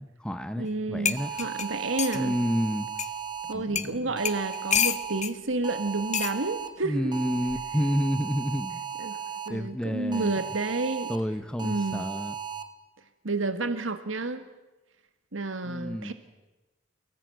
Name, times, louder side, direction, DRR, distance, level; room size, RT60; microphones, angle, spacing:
voice 1, 0.0-1.3 2.1-2.9 3.5-4.1 6.8-8.8 9.1-9.2 9.5-10.4 11.1-12.3 15.6-16.1, equal, 5° left, 9 dB, 0.9 m, -30 dB
voice 2, 0.6-2.4 3.5-7.1 9.0-9.2 9.5-11.1 11.6-12.0 13.2-14.4 15.3-16.1, right 3 dB, 85° right, 10 dB, 1.7 m, -30 dB
sound 1, 0.7-0.8 1.0-2.2 3.0-3.1 3.7-3.9 4.2-5.3 6.1-6.4 7.5-7.7, left 8 dB, 40° left, 1.5 m, -28 dB
sound 2, 1.2-3.5 4.2-5.2 5.6-6.7 7.1-9.5 10.1-11.2 11.6-12.6, right 7 dB, 25° right, 2.0 m, -36 dB
29.0 x 19.0 x 9.2 m, 1.1 s
head